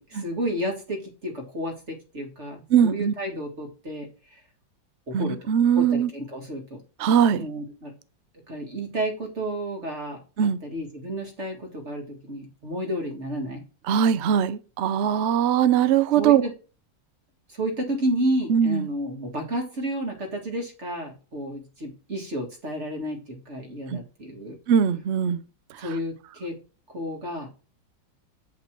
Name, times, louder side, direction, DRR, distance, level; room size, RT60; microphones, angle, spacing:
voice 1, 0.0-4.1 5.1-5.5 5.8-6.8 7.3-7.9 8.5-13.6 16.2-16.5 17.5-24.6 25.8-26.5 26.9-27.5, right 1 dB, 40° right, 2.1 m, -31 dB
voice 2, 2.7-3.1 5.1-6.1 7.0-7.5 10.4-10.6 13.9-16.4 18.5-18.9 23.9-24.0 24.7-25.4, right 8 dB, 70° right, 0.6 m, -21 dB
8.5 x 5.3 x 4.5 m
omnidirectional pair, 2.0 m